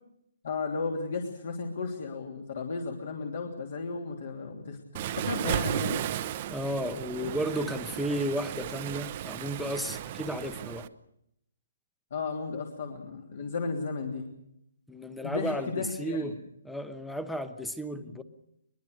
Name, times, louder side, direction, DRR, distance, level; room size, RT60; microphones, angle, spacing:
voice 1, 0.4-4.8 5.1-6.0 7.6-7.8 12.1-14.3 15.2-16.3 17.9-18.0, left 4 dB, 50° left, 2 dB, 3.1 m, -34 dB
Waves surf, 4.9-10.9, right 12 dB, 30° right, 0.8 m, -35 dB
voice 2, 6.5-10.9 14.9-16.4 16.6-18.2, equal, ahead, 11 dB, 0.9 m, -33 dB
22.0 x 22.0 x 6.6 m, 0.78 s
hypercardioid pair, 165°, 0 cm